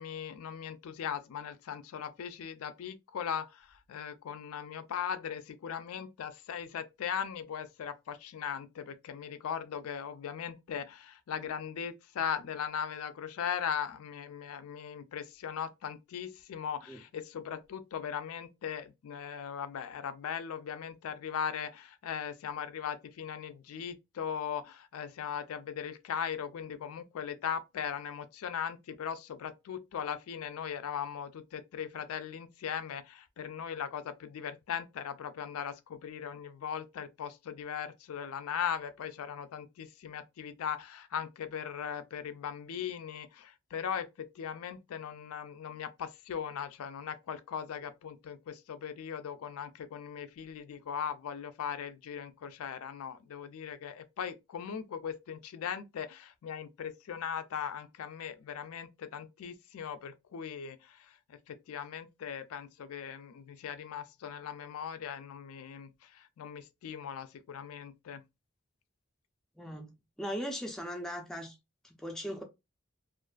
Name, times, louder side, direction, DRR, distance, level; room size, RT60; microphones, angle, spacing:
voice 1, 0.0-68.2, left 8 dB, 80° left, 0.3 m, -39 dB
voice 2, 69.6-69.9 70.2-71.6 71.8-72.4, equal, ahead, 0.4 m, -38 dB
2.4 x 2.4 x 2.2 m
head